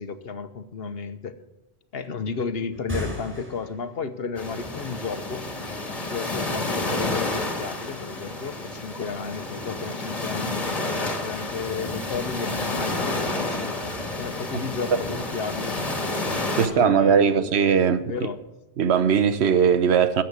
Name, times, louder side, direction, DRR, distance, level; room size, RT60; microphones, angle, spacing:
voice 1, 0.0-1.4 1.9-5.5 5.9-13.8 14.2-15.8 16.6-17.4 18.1-18.4, left 5 dB, 65° left, 1.1 m, -33 dB
sound 1, 2.7-4.0, equal, 10° right, 6.4 m, -34 dB
sound 2, 4.4-16.7, left 2 dB, 35° left, 1.9 m, -30 dB
voice 2, 16.5-18.1 18.8-20.2, right 7 dB, 80° right, 1.1 m, -19 dB
13.5 x 7.7 x 9.6 m
omnidirectional pair, 1.1 m